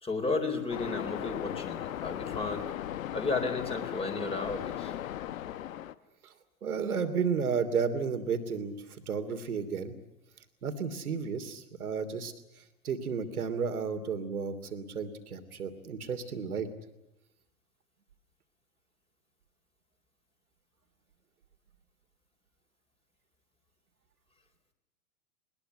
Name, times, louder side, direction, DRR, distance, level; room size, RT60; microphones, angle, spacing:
voice 1, 0.0-2.7 3.1-4.9, left 3 dB, 15° left, 4 dB, 4.0 m, -33 dB
Waves surf, 0.7-5.9, left 11 dB, 65° left, 1.2 m, -37 dB
voice 2, 6.6-8.7 9.1-9.9 10.6-12.3 12.8-16.7, right 6 dB, 80° right, 10 dB, 2.9 m, -32 dB
21.0 x 20.5 x 10.0 m, 0.89 s
hypercardioid pair, 110°, 43 cm